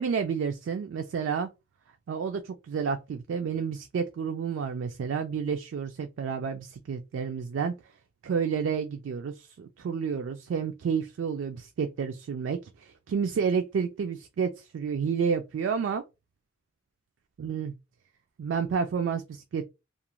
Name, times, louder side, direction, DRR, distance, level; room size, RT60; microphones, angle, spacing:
voice 1, 0.0-1.5 2.1-7.7 8.2-16.0 17.4-17.7 18.4-19.7, right 6 dB, 75° right, 0.3 m, -30 dB
2.5 x 2.1 x 2.9 m
head